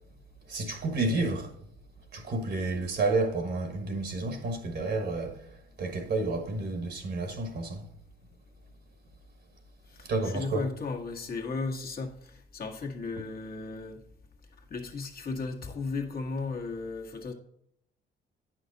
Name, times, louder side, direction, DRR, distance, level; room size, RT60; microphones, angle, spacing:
voice 1, 0.5-1.5 2.1-5.4 5.8-7.9 10.0-10.7, right 2 dB, 60° right, 1.4 m, -30 dB
voice 2, 9.9-14.0 14.7-17.3, left 3 dB, 50° left, 1.5 m, -35 dB
9.3 x 5.9 x 4.0 m
cardioid pair, 90°, 20 cm